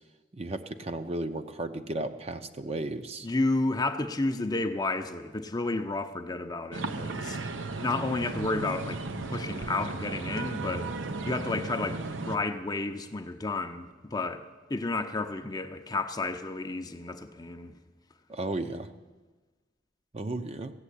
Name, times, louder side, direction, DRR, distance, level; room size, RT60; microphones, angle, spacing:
voice 1, 0.3-3.3 18.3-18.9 20.1-20.7, right 2 dB, 35° right, 8 dB, 0.6 m, -34 dB
voice 2, 3.2-7.4 7.8-10.9 11.2-17.8, left 2 dB, 20° left, 7 dB, 0.6 m, -31 dB
sound 1, 6.7-12.4, right 3 dB, 85° right, 0.8 m, -35 dB
15.5 x 7.6 x 9.9 m, 1.3 s
head